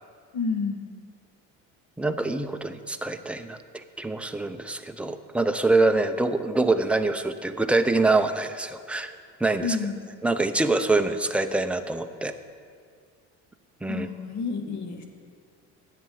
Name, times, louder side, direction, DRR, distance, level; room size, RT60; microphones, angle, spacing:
voice 1, 0.3-0.9 9.6-10.0 13.9-15.1, left 4 dB, 60° left, 5 dB, 1.8 m, -29 dB
voice 2, 2.0-9.1 9.4-9.8 10.2-12.3 13.8-14.1, right 2 dB, 5° right, 7 dB, 0.6 m, -25 dB
10.5 x 7.8 x 8.5 m, 2.1 s
cardioid pair, 115°, 32 cm